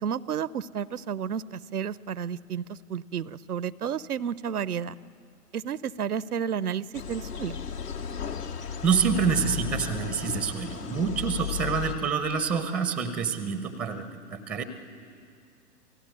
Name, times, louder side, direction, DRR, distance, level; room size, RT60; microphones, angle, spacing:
voice 1, 0.0-4.9 5.5-7.6, right 8 dB, 70° right, 20 dB, 0.7 m, -31 dB
sound 1, 6.9-12.0, left 8 dB, 75° left, 2.3 m, -35 dB
voice 2, 8.8-14.6, right 6 dB, 5° right, 10 dB, 0.6 m, -27 dB
28.0 x 17.0 x 9.5 m, 2.4 s
figure-of-eight pair, 110°, 48 cm